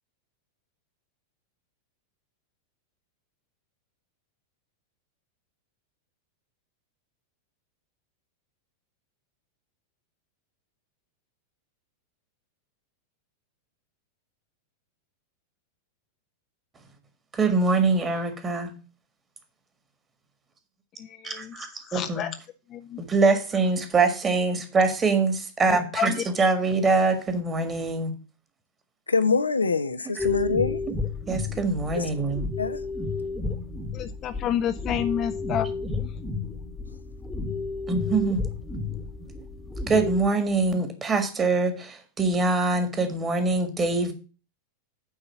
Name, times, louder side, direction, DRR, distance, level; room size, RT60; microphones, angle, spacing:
voice 1, 17.3-18.7 21.2-21.7 21.9-22.3 23.0-28.1 31.3-32.4 37.9-38.4 39.9-44.1, right 3 dB, 20° right, 1.7 m, -24 dB
voice 2, 21.0-22.3 22.7-23.0 25.9-26.2 33.9-35.7 36.0-36.1, left 10 dB, 30° left, 0.5 m, -30 dB
voice 3, 29.1-30.8 31.9-32.1 32.6-32.8, left 4 dB, 75° left, 0.6 m, -24 dB
sound 1, 30.2-40.3, left 3 dB, 10° left, 1.2 m, -32 dB
9.0 x 3.9 x 7.0 m
figure-of-eight pair, 90°, 0 cm